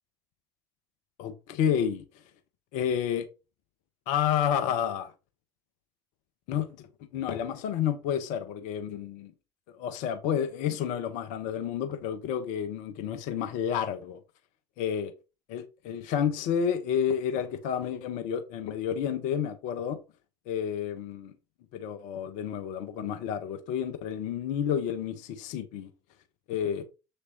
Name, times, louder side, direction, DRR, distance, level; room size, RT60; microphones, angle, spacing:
voice 1, 1.2-2.0 2.7-3.3 4.1-5.1 6.5-6.8 7.1-9.3 9.8-14.2 14.8-15.1 15.5-20.0 20.5-21.3 21.7-25.9 26.5-26.8, left 8 dB, 60° left, 1.2 m, -30 dB
7.7 x 6.6 x 3.0 m
figure-of-eight pair, 60°, 15 cm